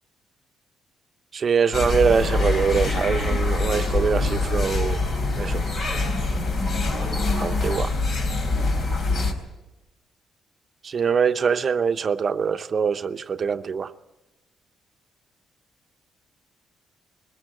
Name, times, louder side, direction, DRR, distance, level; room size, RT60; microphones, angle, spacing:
voice 1, 1.3-5.0 5.4-5.6 7.4-7.9 10.8-13.9, right 6 dB, 45° right, 0.8 m, -23 dB
sound 1, 1.7-9.3, left 3 dB, 65° left, 3.7 m, -24 dB
21.0 x 14.5 x 8.9 m
cardioid pair, 90°, 0 cm